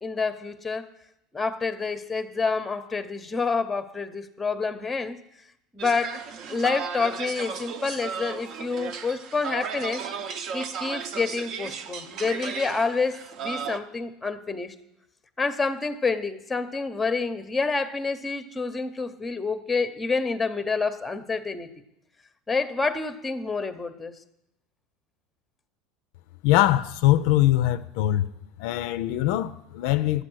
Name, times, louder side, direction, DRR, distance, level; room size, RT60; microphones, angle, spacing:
voice 1, 0.0-0.9 1.3-5.2 5.7-6.2 6.5-10.0 10.5-14.7 15.4-21.7 22.5-24.1, left 4 dB, 10° left, 0.7 m, -28 dB
sound 1, 5.8-13.8, right 6 dB, 50° right, 0.8 m, -35 dB
voice 2, 26.4-28.3 28.6-30.2, left 14 dB, 70° left, 0.4 m, -22 dB
12.0 x 8.2 x 6.2 m
supercardioid pair, 135°, 0 cm